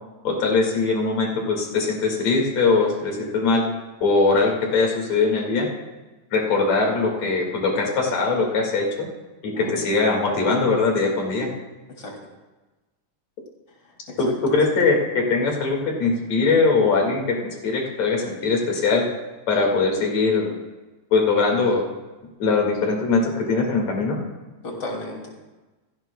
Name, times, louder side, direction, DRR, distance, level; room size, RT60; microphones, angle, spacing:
voice 1, 0.2-3.6 4.0-5.7 6.3-9.1 9.4-11.5 14.2-19.0 19.5-20.5 21.1-21.8 22.4-24.2, left 4 dB, 65° left, 0 dB, 3.2 m, -21 dB
voice 2, 13.8-14.3 24.6-25.3, left 2 dB, 35° left, -1 dB, 3.0 m, -34 dB
16.5 x 15.5 x 2.2 m, 1.2 s
omnidirectional pair, 3.3 m